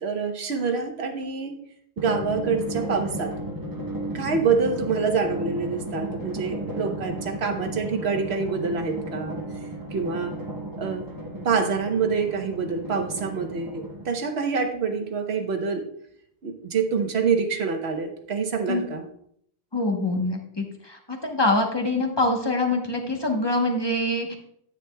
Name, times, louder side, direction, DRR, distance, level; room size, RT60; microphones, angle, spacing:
voice 1, 0.0-1.6 2.0-3.3 4.1-9.4 9.9-10.3 10.8-11.0 11.4-15.8 16.4-19.0, right 5 dB, 75° right, 5 dB, 1.3 m, -26 dB
Drum, 2.0-14.3, right 1 dB, 20° right, 0.9 m, -34 dB
voice 2, 19.7-24.4, left 2 dB, 25° left, 2 dB, 1.1 m, -25 dB
9.6 x 9.3 x 2.3 m, 0.69 s
omnidirectional pair, 1.1 m